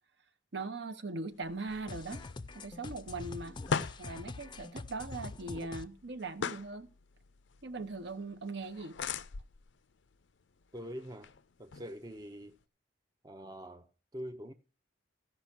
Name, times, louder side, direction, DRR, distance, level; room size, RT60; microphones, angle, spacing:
voice 1, 0.5-2.2 2.5-3.6 4.0-6.9 7.6-9.0, right 3 dB, 65° right, 0.9 m, -40 dB
sound 1, 1.3-12.6, left 5 dB, 80° left, 0.5 m, -43 dB
sound 2, 1.9-5.8, left 3 dB, 25° left, 0.5 m, -44 dB
voice 2, 10.7-11.3 11.6-12.6 13.2-14.5, equal, 20° right, 0.6 m, -44 dB
15.0 x 5.5 x 6.0 m
head